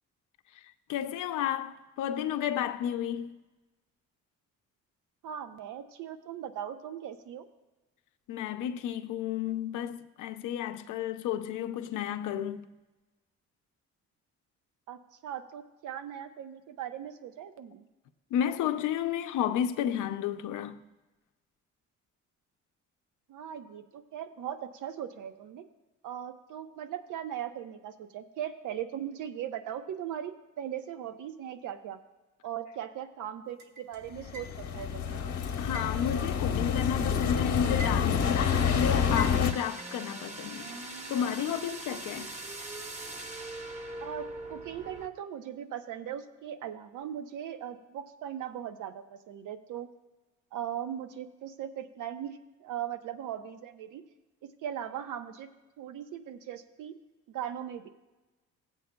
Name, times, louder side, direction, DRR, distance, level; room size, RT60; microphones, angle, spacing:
voice 1, 0.5-3.4 8.3-12.7 18.3-20.8 35.6-42.4, left 10 dB, 85° left, 0.6 m, -32 dB
voice 2, 5.2-7.5 14.9-17.9 23.3-25.6 26.0-32.0 32.4-35.2 44.0-49.9 50.5-54.0 54.4-55.5 55.8-57.0 57.3-57.9, right 10 dB, 80° right, 0.7 m, -39 dB
sound 1, 33.6-34.9 35.7-37.1 37.5-38.4 39.2-40.0, right 2 dB, 65° right, 1.7 m, -44 dB
sound 2, 34.2-39.5, left 7 dB, 60° left, 0.9 m, -28 dB
sound 3, 38.2-45.1, right 2 dB, 25° right, 0.9 m, -41 dB
16.5 x 8.1 x 2.2 m
cardioid pair, 90°, 30 cm